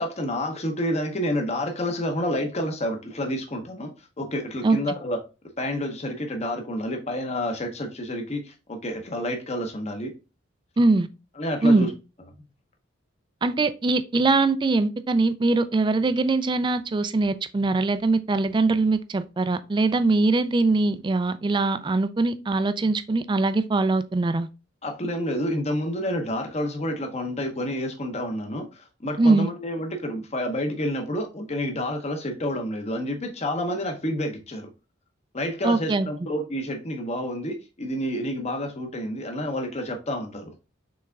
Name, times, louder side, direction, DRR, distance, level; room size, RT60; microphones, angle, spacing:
voice 1, 0.0-5.2 5.6-10.2 11.4-11.9 24.8-34.7 35.3-40.5, left 1 dB, 35° left, 0.9 m, -29 dB
voice 2, 10.8-11.1 11.6-11.9 13.4-24.5 29.2-29.5 35.6-36.1, right 3 dB, 25° right, 0.3 m, -22 dB
6.1 x 3.5 x 2.3 m
head